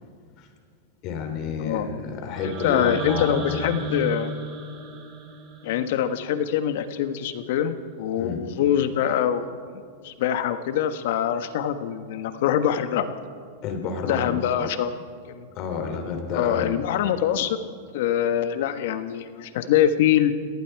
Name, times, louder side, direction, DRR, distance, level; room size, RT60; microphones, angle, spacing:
voice 1, 1.0-3.7 8.2-8.4 13.6-14.7 15.5-16.8, left 5 dB, 45° left, 5 dB, 3.3 m, -30 dB
sound 1, 2.3-6.4, right 2 dB, 35° right, 4.4 m, -34 dB
voice 2, 2.4-4.3 5.6-13.1 14.0-15.0 15.3-15.5 16.3-17.6 17.9-20.3, left 10 dB, 65° left, 10 dB, 1.4 m, -24 dB
30.0 x 18.5 x 4.7 m, 2.1 s
hypercardioid pair, 135°, 0 cm